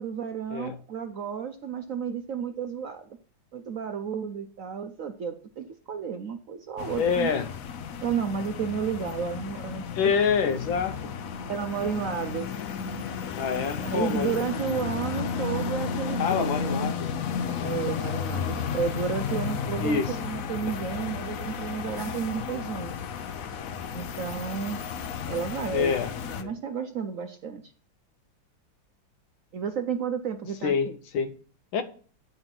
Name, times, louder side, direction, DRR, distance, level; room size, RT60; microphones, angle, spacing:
voice 1, 0.0-3.1 3.5-7.3 8.0-10.1 11.5-12.5 13.8-16.9 17.6-22.9 23.9-24.8 25.3-25.9 26.4-27.7 29.5-31.0, right 7 dB, 65° right, 7 dB, 0.8 m, -32 dB
sound 1, 6.8-26.4, left 6 dB, 60° left, 1.0 m, -33 dB
voice 2, 7.0-7.5 9.9-11.2 13.3-14.4 16.2-17.1 17.6-17.7 19.8-20.1 25.7-26.1 26.4-26.5 30.6-30.9 31.1-31.3 31.7-31.8, left 6 dB, 85° left, 10 dB, 1.7 m, -26 dB
9.8 x 5.6 x 5.9 m, 0.42 s
omnidirectional pair, 2.1 m